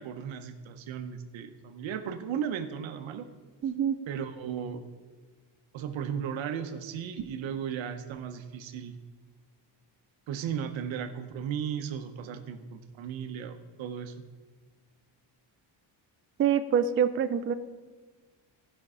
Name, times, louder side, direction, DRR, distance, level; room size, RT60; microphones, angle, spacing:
voice 1, 0.0-3.3 4.1-4.8 5.7-9.0 10.3-14.1, right 8 dB, 80° right, 9 dB, 0.9 m, -35 dB
voice 2, 3.6-4.0 16.4-17.5, right 8 dB, 30° right, 10 dB, 0.3 m, -25 dB
15.0 x 5.4 x 4.9 m, 1.4 s
cardioid pair, 130°, 46 cm